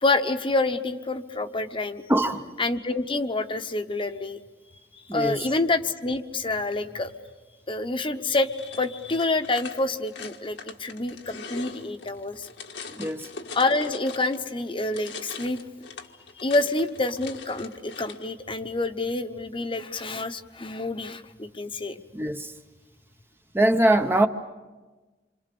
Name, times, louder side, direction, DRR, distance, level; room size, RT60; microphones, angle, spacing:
voice 1, 0.0-2.0 2.6-4.4 5.1-7.1 7.7-12.5 13.5-15.6 16.4-22.0, left 2 dB, 30° left, 1.0 m, -27 dB
voice 2, 2.1-2.4 5.1-5.5 13.0-13.3 22.1-22.5 23.5-24.3, right 1 dB, 15° right, 0.7 m, -22 dB
sound 1, 8.5-14.5 14.8-18.3, left 5 dB, 85° left, 1.8 m, -42 dB
27.5 x 25.5 x 6.9 m
head